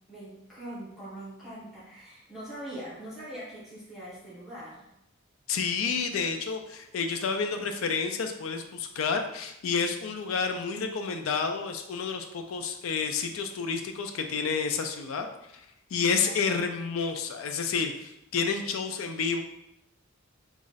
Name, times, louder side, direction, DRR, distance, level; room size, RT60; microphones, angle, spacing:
voice 1, 0.1-4.8 16.1-16.5, right 1 dB, ahead, -10 dB, 1.2 m, -42 dB
voice 2, 5.5-15.3 15.9-19.4, left 5 dB, 80° left, 6 dB, 0.4 m, -30 dB
3.0 x 2.4 x 3.9 m, 0.85 s
head